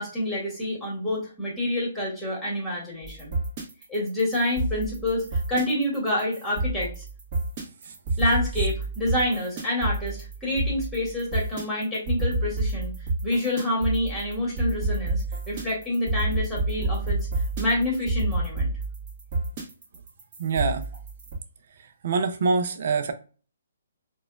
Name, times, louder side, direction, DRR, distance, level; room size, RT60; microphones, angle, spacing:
voice 1, 0.0-3.3 3.9-7.0 8.2-12.9 13.2-17.2 17.6-18.7, left 1 dB, ahead, 1.6 m, -27 dB
sound 1, 3.0-21.3, right 2 dB, 30° right, 1.3 m, -29 dB
voice 2, 20.4-20.9 22.0-23.1, right 4 dB, 55° right, 0.5 m, -25 dB
4.1 x 2.4 x 2.3 m
hypercardioid pair, 155°, 0 cm